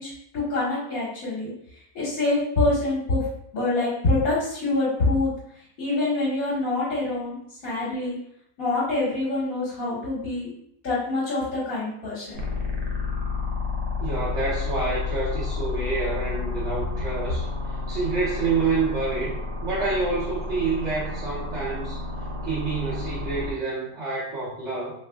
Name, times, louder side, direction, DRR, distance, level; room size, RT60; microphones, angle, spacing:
voice 1, 0.0-1.5 1.9-3.3 3.5-5.3 5.8-7.4 7.6-8.2 8.6-10.5 10.8-12.4, left 2 dB, 60° left, -9 dB, 1.5 m, -25 dB
sound 1, 12.3-23.5, left 4 dB, 85° right, 1.3 m, -30 dB
voice 2, 14.0-22.0 22.4-24.9, right 4 dB, 50° right, -8 dB, 1.0 m, -28 dB
3.4 x 3.3 x 2.2 m, 0.71 s
omnidirectional pair, 1.8 m